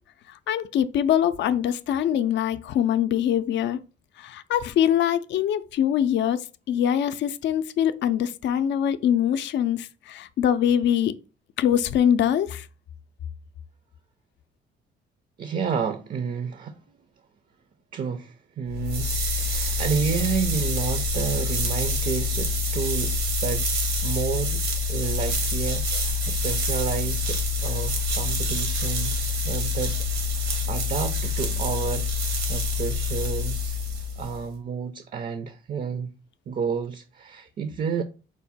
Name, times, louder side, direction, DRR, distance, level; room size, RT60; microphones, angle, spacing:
voice 1, 0.5-3.8 4.2-6.4 6.7-11.1 11.6-12.7, left 9 dB, 65° left, 0.4 m, -23 dB
voice 2, 15.4-16.8 17.9-23.7 24.0-24.6 24.9-30.0 30.4-32.1 32.5-33.8 34.2-36.1 36.5-38.0, right 6 dB, 45° right, 0.4 m, -30 dB
sound 1, 18.7-34.4, left 3 dB, 85° right, 1.1 m, -26 dB
4.6 x 2.1 x 4.1 m
cardioid pair, 90°, 20 cm